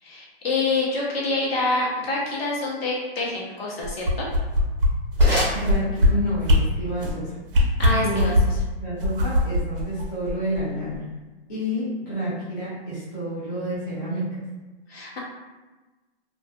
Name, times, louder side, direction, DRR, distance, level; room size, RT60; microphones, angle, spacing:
voice 1, 0.0-4.3 7.8-8.3 14.9-15.2, left 2 dB, 75° left, -4 dB, 1.0 m, -26 dB
sound 1, 3.8-4.9 5.2-5.3 5.6-6.1 6.4-6.6 7.0-7.2 7.5-8.6 9.0-10.6 10.9-11.0, left 1 dB, 60° right, 0.6 m, -19 dB
sound 2, 4.4-6.4, equal, 5° right, 0.9 m, -31 dB
voice 2, 5.5-7.4 7.9-8.3 8.8-11.1 11.5-14.4, equal, 20° left, -11 dB, 0.5 m, -29 dB
2.4 x 2.4 x 2.4 m, 1.2 s
hypercardioid pair, 170°, 31 cm